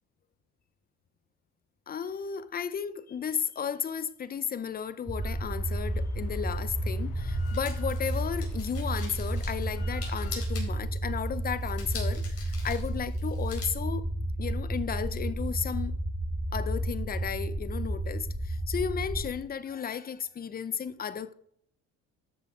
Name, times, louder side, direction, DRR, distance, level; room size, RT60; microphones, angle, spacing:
voice 1, 1.9-14.0 14.4-15.9 16.5-21.3, left 7 dB, 30° left, 0.7 m, -34 dB
sound 1, 5.1-19.3, right 1 dB, 10° right, 2.2 m, -32 dB
Drill, 5.2-10.4, left 5 dB, 85° left, 2.3 m, -52 dB
sound 2, 6.3-13.7, left 5 dB, 50° left, 4.5 m, -45 dB
13.0 x 6.2 x 4.8 m
cardioid pair, 115°, 31 cm